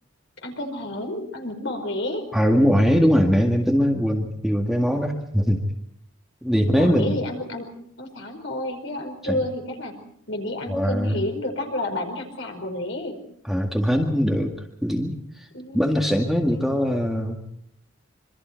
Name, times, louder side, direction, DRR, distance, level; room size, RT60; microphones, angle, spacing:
voice 1, 0.4-2.3 6.6-7.7 8.0-10.0 10.3-13.2 15.5-15.9 16.4-16.8, left 1 dB, 60° left, 4 dB, 4.9 m, -30 dB
voice 2, 2.3-5.6 6.4-7.2 9.2-9.4 10.7-11.2 13.5-14.5 14.8-15.2 15.7-17.4, equal, ahead, 1 dB, 2.0 m, -21 dB
26.5 x 25.0 x 4.6 m, 0.72 s
head